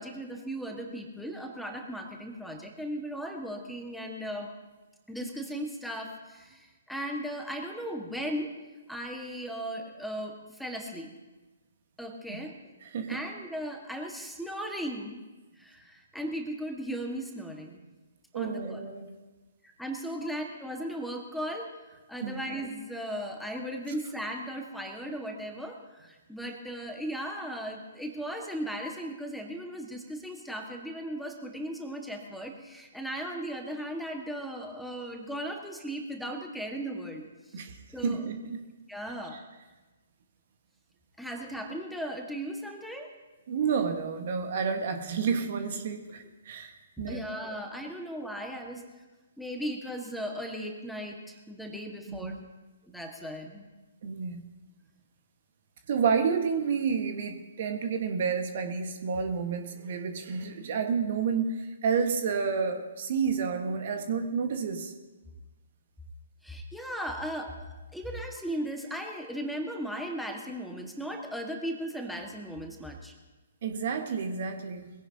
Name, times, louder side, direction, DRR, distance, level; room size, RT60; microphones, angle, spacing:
voice 1, 0.0-4.5 5.1-8.5 8.9-11.1 12.0-12.5 13.1-15.2 15.6-17.8 18.3-18.8 19.6-37.2 37.9-38.2 38.9-39.4 41.2-43.1 47.0-48.8 49.4-52.3 52.8-53.7 66.4-73.1, equal, ahead, 1 dB, 1.6 m, -37 dB
voice 2, 12.8-13.2 18.3-19.1 22.2-22.4 37.5-37.8 38.0-38.6 43.5-47.2 47.5-47.6 52.1-52.4 54.0-54.4 55.9-64.9 73.6-74.9, right 6 dB, 50° right, 6 dB, 1.5 m, -30 dB
22.0 x 16.0 x 2.8 m, 1.2 s
figure-of-eight pair, 125°, 0 cm